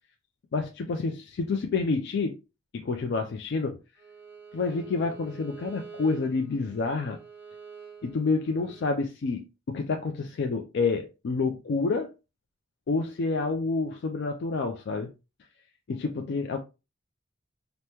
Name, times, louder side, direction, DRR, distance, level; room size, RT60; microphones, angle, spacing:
voice 1, 0.5-2.3 2.7-3.8 4.5-7.2 8.0-12.1 12.9-15.1 15.9-16.6, left 4 dB, 60° left, 0.4 m, -28 dB
Bowed string instrument, 4.0-9.0, right 6 dB, 10° right, 0.8 m, -47 dB
3.4 x 2.0 x 2.8 m
head